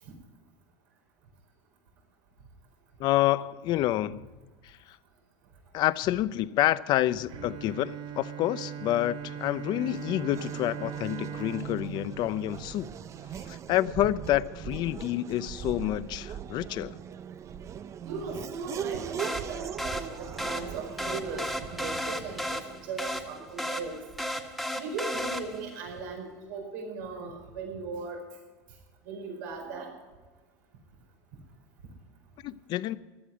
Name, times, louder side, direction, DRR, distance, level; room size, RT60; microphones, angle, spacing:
voice 1, 3.0-4.3 4.6-5.0 5.7-12.9 13.5-17.0 32.4-33.0, left 14 dB, 50° left, 0.6 m, -28 dB
Bowed string instrument, 7.3-13.5, right 8 dB, 50° right, 1.3 m, -40 dB
Race car auto racing / Accelerating revving vroom, 8.9-24.5, right 9 dB, 30° right, 0.5 m, -41 dB
voice 2, 18.0-24.0 24.7-28.2 29.1-29.9, right 4 dB, 85° right, 4.8 m, -38 dB
sound 1, 19.2-25.8, equal, ahead, 1.6 m, -35 dB
16.0 x 12.5 x 5.0 m
supercardioid pair, 135°, 10 cm